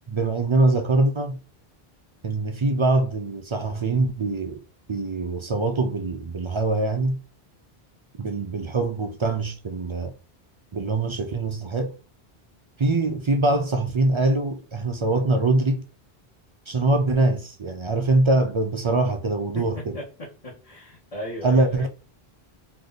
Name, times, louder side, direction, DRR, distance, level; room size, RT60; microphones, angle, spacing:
voice 1, 0.1-1.4 2.2-4.6 4.9-7.2 8.2-10.1 10.7-11.9 12.8-15.8 16.7-20.0 21.4-21.9, right 2 dB, 50° right, 0.3 m, -23 dB
voice 2, 19.5-21.9, left 1 dB, 40° left, 1.2 m, -37 dB
3.2 x 2.7 x 3.9 m
omnidirectional pair, 1.0 m